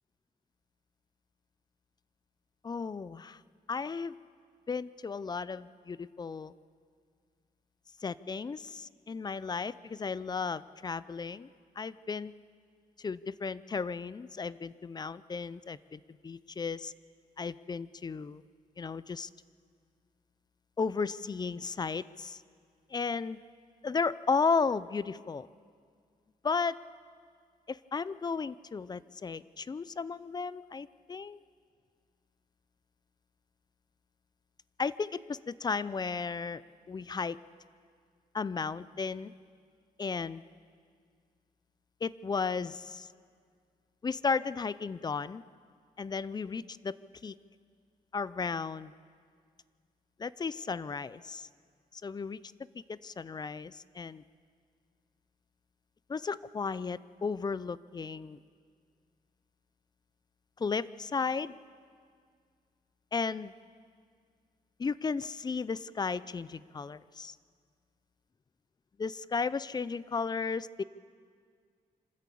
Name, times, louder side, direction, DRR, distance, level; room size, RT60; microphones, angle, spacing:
voice 1, 2.6-3.4 3.7-4.1 4.7-6.5 8.0-11.5 11.8-12.3 13.0-16.9 17.4-18.4 18.8-19.3 20.8-22.4 22.9-23.4 23.8-25.5 26.4-26.8 27.7-31.4 34.8-36.6 36.9-37.4 38.3-39.3 40.0-40.4 42.0-43.1 44.0-45.4 46.0-47.0 47.2-47.3 48.1-48.9 50.2-51.5 51.9-52.4 52.9-54.2 56.1-58.4 60.6-61.5 63.1-63.5 64.8-67.4 69.0-70.8, left 5 dB, 30° left, 18 dB, 0.4 m, -34 dB
25.5 x 13.0 x 8.5 m, 2.1 s
wide cardioid pair, 135°, 15 cm